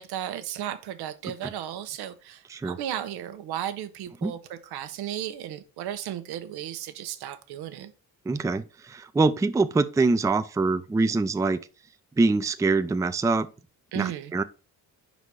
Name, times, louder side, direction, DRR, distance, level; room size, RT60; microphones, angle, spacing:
voice 1, 0.0-7.9 13.9-14.3, right 11 dB, 85° right, 0.8 m, -35 dB
voice 2, 8.3-11.6 12.2-13.5 14.0-14.4, right 3 dB, 10° right, 0.4 m, -24 dB
5.3 x 4.1 x 4.7 m
cardioid pair, 75°, 38 cm